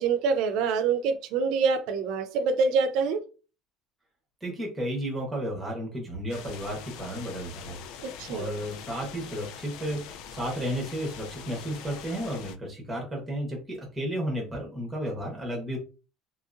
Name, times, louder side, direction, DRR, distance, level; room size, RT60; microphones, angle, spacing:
voice 1, 0.0-3.2 8.0-8.5, right 5 dB, 55° right, 0.5 m, -26 dB
voice 2, 4.4-7.8 8.3-15.8, equal, 5° right, 1.1 m, -33 dB
sound 1, 6.3-12.6, left 8 dB, 65° left, 0.3 m, -43 dB
3.0 x 2.8 x 2.5 m
cardioid pair, 180°, 0 cm